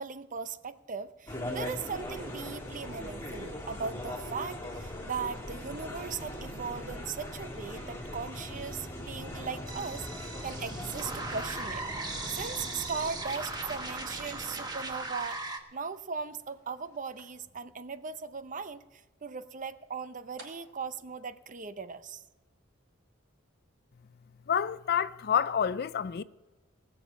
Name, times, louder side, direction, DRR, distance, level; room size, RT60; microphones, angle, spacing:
voice 1, 0.0-11.8 12.3-15.4 15.7-18.8 19.2-22.2, right 5 dB, 40° right, 0.7 m, -38 dB
sound 1, 1.3-15.5, left 1 dB, 15° left, 2.7 m, -41 dB
sound 2, 9.7-15.6, right 2 dB, 20° right, 1.3 m, -38 dB
sound 3, 11.9-22.3, right 2 dB, 65° right, 5.6 m, -62 dB
voice 2, 24.5-26.2, left 7 dB, 50° left, 0.4 m, -28 dB
19.0 x 7.1 x 7.4 m
head